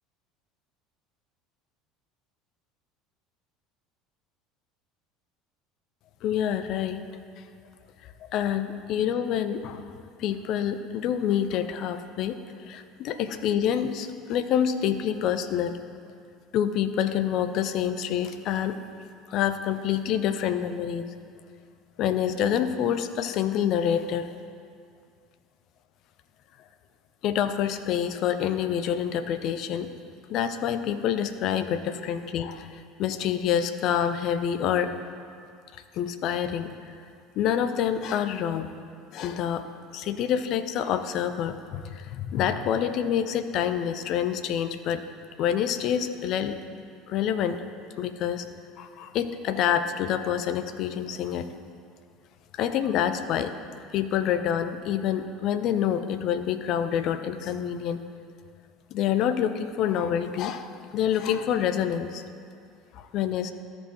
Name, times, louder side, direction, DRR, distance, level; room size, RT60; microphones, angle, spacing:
voice 1, 6.2-7.0 8.3-9.9 10.2-12.4 12.6-15.8 16.5-18.8 19.3-21.0 22.0-24.3 27.2-29.9 30.3-34.9 35.7-36.7 37.4-38.7 39.1-39.7 39.9-45.0 45.4-46.6 47.1-47.6 48.0-48.5 48.8-51.5 52.6-53.5 53.9-58.0 58.9-62.2 62.9-63.5, left 9 dB, 50° left, 9 dB, 0.5 m, -27 dB
13.5 x 4.9 x 3.6 m, 2.3 s
figure-of-eight pair, 65°, 0 cm